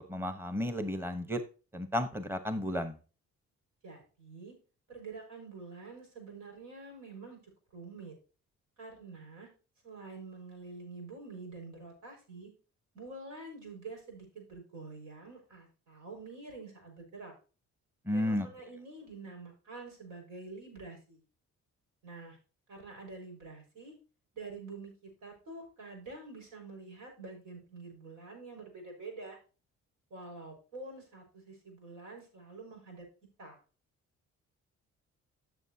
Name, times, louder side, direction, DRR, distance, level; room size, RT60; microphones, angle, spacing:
voice 1, 0.0-1.4 1.7-3.0 18.1-18.5, left 1 dB, 10° right, 9 dB, 1.1 m, -33 dB
voice 2, 3.8-4.6 4.9-7.4 7.7-8.2 8.8-9.5 9.8-12.5 12.9-17.3 18.1-21.2 22.0-22.4 22.7-23.9 24.3-29.4 30.1-33.1 33.4-33.6, right 3 dB, 85° right, 2 dB, 5.6 m, -47 dB
13.5 x 7.0 x 2.8 m, 0.35 s
cardioid pair, 90°, 30 cm